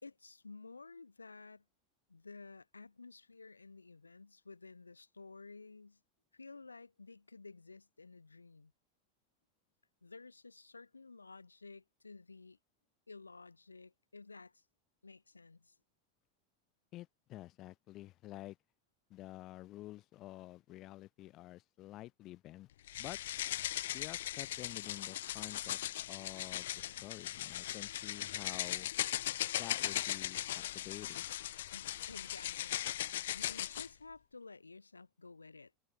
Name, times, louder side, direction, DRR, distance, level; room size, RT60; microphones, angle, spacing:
voice 1, 0.0-1.6 2.1-6.0 6.3-8.7 10.0-12.6 13.1-14.6 15.0-15.8 31.7-35.7, left 3 dB, 85° left, 2.5 m, -53 dB
voice 2, 16.9-18.6 19.1-22.7 23.0-23.2 23.9-25.8 26.1-28.9 29.6-30.4 30.7-31.3, left 16 dB, 45° left, 1.0 m, -49 dB
sound 1, 22.9-33.9, left 13 dB, 65° left, 0.4 m, -38 dB
figure-of-eight pair, 80°, 0 cm